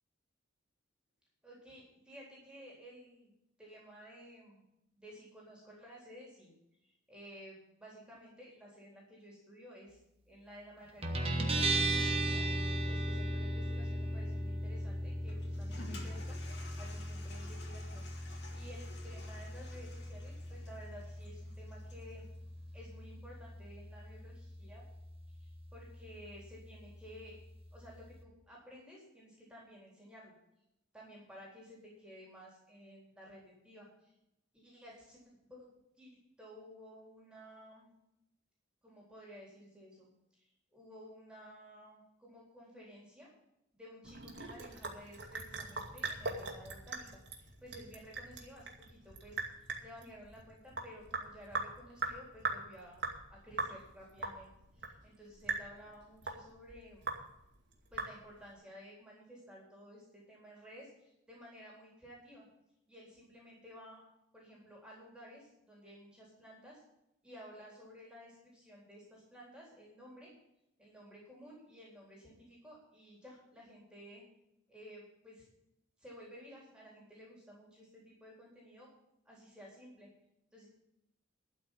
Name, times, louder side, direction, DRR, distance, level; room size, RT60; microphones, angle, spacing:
voice 1, 1.4-3.3 3.6-4.6 4.9-6.5 6.8-10.0 10.3-12.5 12.9-22.3 22.7-24.8 25.4-27.4 27.7-30.3 30.9-34.1 34.5-35.2 35.5-35.7 36.0-36.1 36.4-37.9 38.8-43.3 43.7-53.0 53.3-57.0 57.9-62.5 62.9-64.0 64.3-66.8 67.2-70.3 70.8-74.2 74.7-75.4 76.0-78.9 79.3-80.1 80.5-80.7, equal, 5° right, -4 dB, 3.8 m, -54 dB
Guitar, 11.0-28.2, right 1 dB, 30° right, 1.3 m, -38 dB
Toilet flush, 15.3-22.2, left 2 dB, 55° left, 2.6 m, -53 dB
Sink (filling or washing) / Drip, 44.0-58.5, right 3 dB, 60° right, 2.3 m, -41 dB
12.5 x 5.8 x 9.3 m, 0.83 s
head